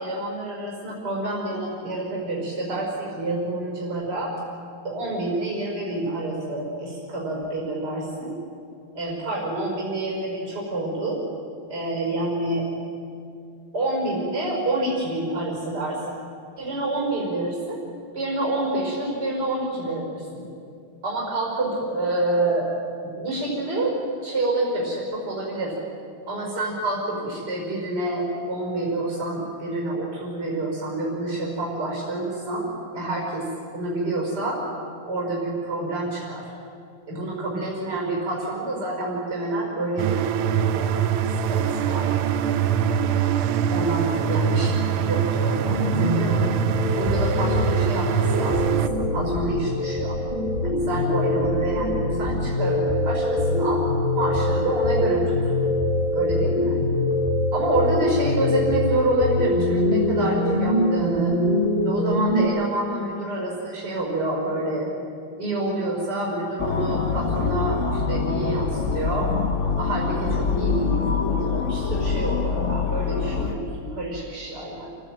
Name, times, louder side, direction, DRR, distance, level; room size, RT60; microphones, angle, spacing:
voice 1, 0.0-4.3 4.8-8.3 8.9-11.2 11.7-12.7 13.7-16.0 16.6-17.8 18.1-20.5 21.0-22.7 23.0-23.9 24.2-25.7 26.3-32.7 32.9-33.4 33.7-34.6 35.1-36.5 37.1-40.9 41.5-42.3 43.1-44.7 45.0-46.6 47.0-50.2 50.6-53.8 54.1-55.5 56.1-56.8 57.5-61.4 61.9-64.9 65.4-69.3 69.8-74.9, right 2 dB, 50° right, -3 dB, 5.7 m, -28 dB
sound 1, 40.0-48.9, right 8 dB, 85° right, 1.8 m, -23 dB
sound 2, 45.7-62.5, left 1 dB, 25° left, 7.8 m, -23 dB
sound 3, 66.6-73.5, left 5 dB, 45° left, 1.1 m, -25 dB
28.5 x 15.5 x 9.0 m, 2.5 s
omnidirectional pair, 2.3 m